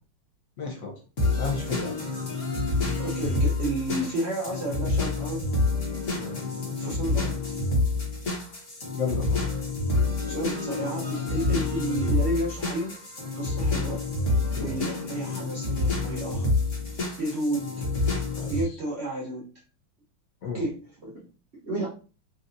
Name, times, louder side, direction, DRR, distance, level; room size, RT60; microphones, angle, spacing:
voice 1, 0.6-0.9 1.4-2.0 6.2-6.4 8.9-9.4 14.5-14.8 18.4-18.5 20.4-20.7, left 5 dB, 65° left, 1 dB, 0.8 m, -32 dB
sound 1, 1.2-18.6, left 3 dB, 45° left, 1.1 m, -28 dB
voice 2, 3.0-5.4 6.8-7.4 10.3-13.0 13.4-14.0 14.6-16.5 17.2-17.9 18.5-19.5 20.5-21.3 21.6-21.9, right 1 dB, 70° right, -4 dB, 0.6 m, -31 dB
4.0 x 2.4 x 2.5 m, 0.35 s
omnidirectional pair, 2.3 m